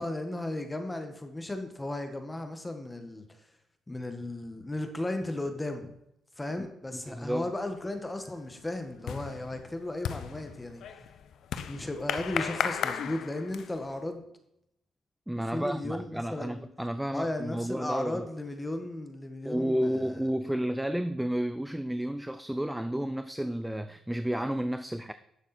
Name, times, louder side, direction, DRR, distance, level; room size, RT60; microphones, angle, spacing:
voice 1, 0.0-3.2 3.9-5.9 6.4-10.8 11.7-14.2 15.5-16.7 17.1-20.2, left 1 dB, 15° left, 6 dB, 1.6 m, -35 dB
voice 2, 6.6-7.5 15.3-18.3 19.5-25.1, equal, 5° right, 11 dB, 0.5 m, -31 dB
sound 1, 7.4-7.8 8.1-13.9, left 8 dB, 70° left, 0.8 m, -35 dB
11.0 x 7.2 x 4.4 m, 0.79 s
cardioid pair, 90°, 0 cm